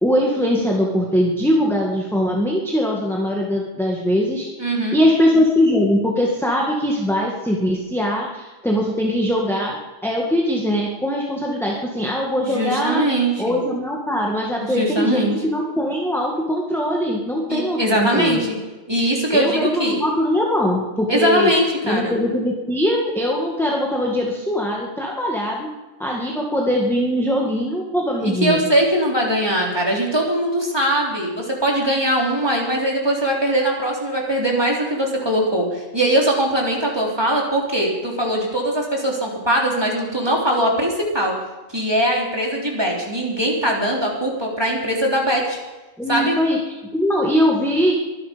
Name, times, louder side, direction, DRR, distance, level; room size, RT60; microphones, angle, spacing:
voice 1, 0.0-13.0 13.4-18.4 19.3-21.5 21.8-25.7 26.0-28.6 46.0-46.6 46.9-47.9, equal, ahead, -2 dB, 1.9 m, -21 dB
voice 2, 4.6-5.0 12.4-13.6 14.7-15.3 17.5-18.5 18.9-20.0 21.1-22.1 28.2-41.3 41.7-45.6 46.1-46.3, right 1 dB, 20° right, -2 dB, 3.4 m, -21 dB
23.5 x 10.5 x 5.2 m, 1.1 s
omnidirectional pair, 1.4 m